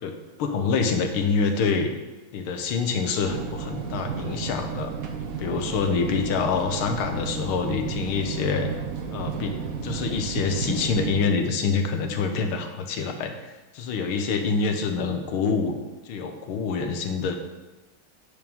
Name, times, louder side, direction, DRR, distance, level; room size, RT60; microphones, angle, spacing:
voice 1, 0.0-1.9 2.3-4.9 5.4-8.7 9.1-15.7 16.1-17.4, left 5 dB, 75° left, 5 dB, 1.7 m, -26 dB
sound 1, 3.2-11.3, right 6 dB, 60° right, 0.9 m, -33 dB
9.1 x 4.9 x 5.3 m, 1.1 s
omnidirectional pair, 2.4 m